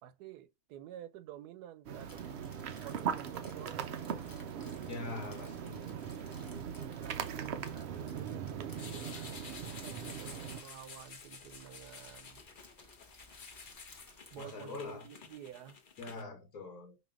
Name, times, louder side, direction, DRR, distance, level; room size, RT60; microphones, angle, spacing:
voice 1, 0.0-2.2 2.8-4.1 7.0-12.4 14.3-15.8, right 11 dB, 90° right, 1.2 m, -51 dB
sound 1, 1.8-10.6, right 8 dB, 65° right, 0.6 m, -40 dB
Crumpling crinkling, 1.9-14.5, left 1 dB, 15° left, 1.1 m, -59 dB
voice 2, 4.9-6.0 14.3-15.1 16.0-17.0, left 3 dB, 70° left, 1.4 m, -43 dB
sound 2, 8.8-16.2, left 5 dB, 45° left, 0.8 m, -51 dB
5.3 x 2.8 x 2.3 m
omnidirectional pair, 1.6 m